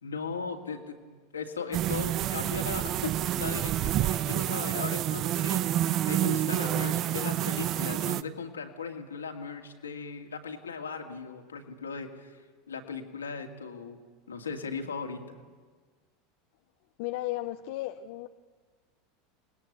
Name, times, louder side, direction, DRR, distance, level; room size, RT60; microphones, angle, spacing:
voice 1, 0.0-5.6 6.1-12.3 12.7-14.0 14.3-15.4, left 5 dB, 80° left, 4 dB, 2.3 m, -38 dB
sound 1, 1.7-8.2, right 12 dB, 45° right, 0.7 m, -28 dB
voice 2, 17.0-18.3, left 16 dB, 60° left, 8 dB, 0.7 m, -34 dB
29.5 x 20.0 x 8.1 m, 1.5 s
figure-of-eight pair, 80°, 0 cm